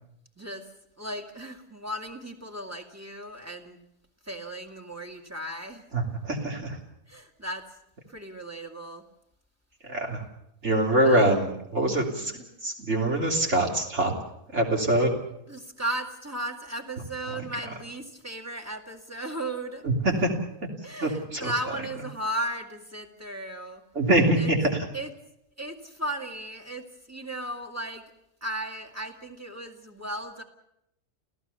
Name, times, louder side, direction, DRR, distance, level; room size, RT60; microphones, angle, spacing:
voice 1, 0.4-0.7 1.0-3.8 4.3-5.9 7.1-7.7 8.1-9.1 11.0-11.4 12.2-12.4 15.5-19.8 20.8-23.8 24.4-24.5 24.9-25.1 25.6-28.0 28.4-30.4, right 1 dB, 10° right, 4 dB, 2.1 m, -35 dB
voice 2, 5.9-6.8 9.8-10.2 10.6-12.3 12.6-14.1 14.5-15.1 17.3-17.4 19.8-20.3 21.0-21.5 23.9-24.9, right 1 dB, 50° right, 2 dB, 3.5 m, -24 dB
28.5 x 16.0 x 7.0 m, 0.81 s
omnidirectional pair, 1.6 m